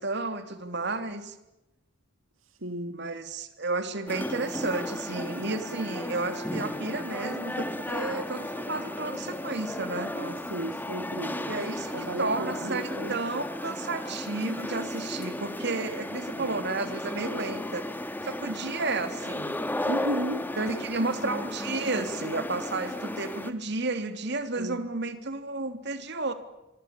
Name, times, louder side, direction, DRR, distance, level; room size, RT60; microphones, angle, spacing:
voice 1, 0.0-1.3 2.9-10.1 11.5-11.9 12.2-17.9 18.2-19.5 20.6-26.3, right 3 dB, 55° right, 3.4 m, -32 dB
voice 2, 2.4-3.0 10.1-11.5 11.9-13.2 16.4-16.6 19.9-20.6 21.0-21.1 24.6-24.8, right 1 dB, 75° right, 2.1 m, -35 dB
sound 1, 4.1-23.5, left 1 dB, 10° left, 1.8 m, -34 dB
26.0 x 24.5 x 8.6 m
head